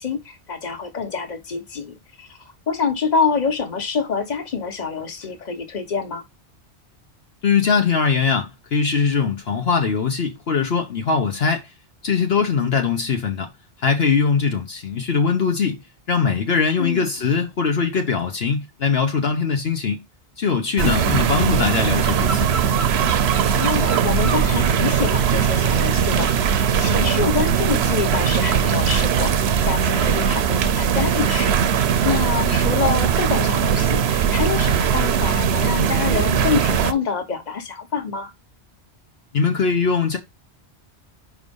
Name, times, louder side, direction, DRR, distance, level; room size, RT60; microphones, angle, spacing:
voice 1, 0.0-2.4 2.7-6.2 16.8-17.1 20.8-21.1 23.5-29.3 29.6-31.5 32.0-38.3, left 5 dB, 40° left, 1.3 m, -26 dB
voice 2, 7.4-11.7 12.0-13.5 13.8-15.8 16.1-20.0 20.4-22.5 39.3-40.2, left 5 dB, 65° left, 1.2 m, -21 dB
sound 1, 20.8-36.9, right 8 dB, 70° right, 0.9 m, -20 dB
5.2 x 4.7 x 5.3 m
omnidirectional pair, 1.1 m